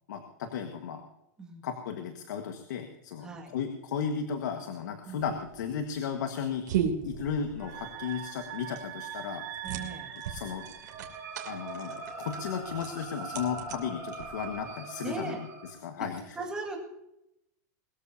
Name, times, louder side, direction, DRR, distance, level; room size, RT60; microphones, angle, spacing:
voice 1, 0.1-1.0 1.6-6.7 7.0-9.6 10.3-10.6 11.4-15.4 15.8-16.4, left 7 dB, 85° left, 6 dB, 1.7 m, -35 dB
voice 2, 3.2-3.6 5.0-5.3 9.6-10.1 15.0-15.4 16.3-16.8, right 3 dB, 10° right, 0 dB, 2.0 m, -38 dB
sound 1, 5.2-14.7, right 8 dB, 85° right, 3.0 m, -37 dB
sound 2, 7.6-15.7, right 5 dB, 25° right, 5.5 m, -41 dB
22.0 x 14.0 x 2.8 m, 0.85 s
supercardioid pair, 175°, 10 cm